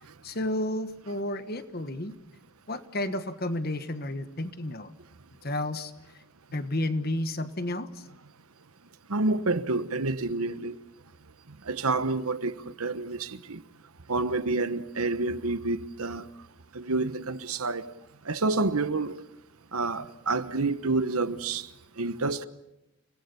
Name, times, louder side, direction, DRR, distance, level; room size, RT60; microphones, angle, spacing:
voice 1, 0.2-2.1 2.7-4.9 5.4-5.9 6.5-7.9, left 1 dB, 45° left, 1.3 m, -31 dB
voice 2, 9.1-10.7 11.7-13.6 14.1-16.3 16.7-17.9 18.3-19.1 19.7-21.7 22.0-22.5, right 3 dB, 80° right, 1.1 m, -28 dB
29.5 x 20.0 x 7.0 m
head